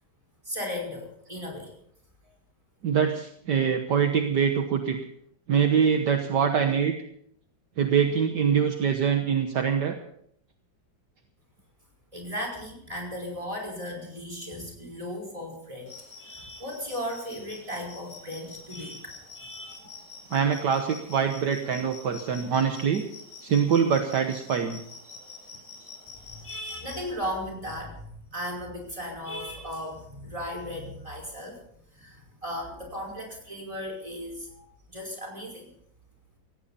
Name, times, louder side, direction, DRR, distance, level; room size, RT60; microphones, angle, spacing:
voice 1, 0.5-1.7 12.1-15.9 16.2-19.7 26.2-31.6 31.9-35.7, equal, 15° right, 1 dB, 5.3 m, -36 dB
voice 2, 2.8-5.0 5.5-6.9 7.8-10.0 20.3-23.1 23.4-24.8, right 7 dB, 65° right, 5 dB, 1.7 m, -24 dB
sound 1, 15.9-27.1, left 4 dB, 35° left, 4.7 m, -46 dB
17.5 x 17.0 x 4.3 m, 0.68 s
omnidirectional pair, 2.1 m